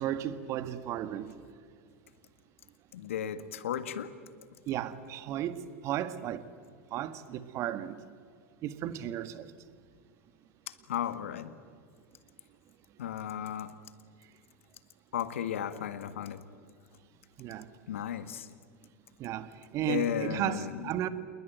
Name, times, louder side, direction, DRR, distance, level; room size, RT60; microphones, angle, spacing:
voice 1, 0.0-1.4 4.7-6.4 6.9-8.0 8.6-9.5 17.4-17.7 19.2-21.1, right 11 dB, 45° right, 1.8 m, -34 dB
voice 2, 2.9-4.1 10.7-11.5 13.0-13.7 15.1-16.4 17.9-18.5 19.9-20.9, left 9 dB, 70° left, 1.8 m, -34 dB
28.0 x 21.5 x 9.3 m
hypercardioid pair, 85°, 7 cm